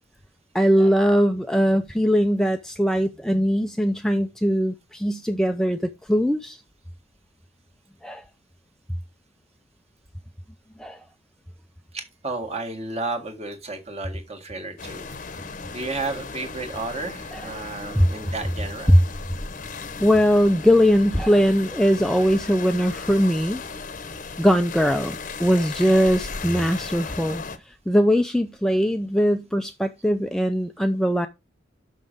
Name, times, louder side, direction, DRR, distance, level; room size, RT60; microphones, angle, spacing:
voice 1, 0.5-6.6 8.0-8.2 10.8-11.0 17.3-17.5 18.0-18.1 18.9-19.0 20.0-23.6 24.4-31.3, equal, 5° left, 0.4 m, -20 dB
voice 2, 11.9-15.1 15.7-18.9, right 3 dB, 30° right, 1.6 m, -32 dB
sound 1, 14.8-27.6, left 4 dB, 40° left, 0.8 m, -36 dB
6.2 x 5.9 x 5.1 m
head